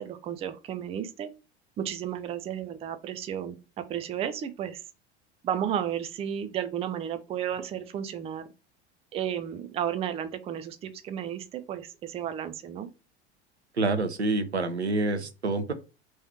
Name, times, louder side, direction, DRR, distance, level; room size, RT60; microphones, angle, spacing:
voice 1, 0.0-1.3 1.8-4.8 5.4-8.5 9.1-12.9, right 9 dB, 20° right, 0.4 m, -33 dB
voice 2, 13.8-15.7, right 2 dB, 85° right, 0.6 m, -27 dB
3.1 x 3.0 x 4.3 m
figure-of-eight pair, 75°, 32 cm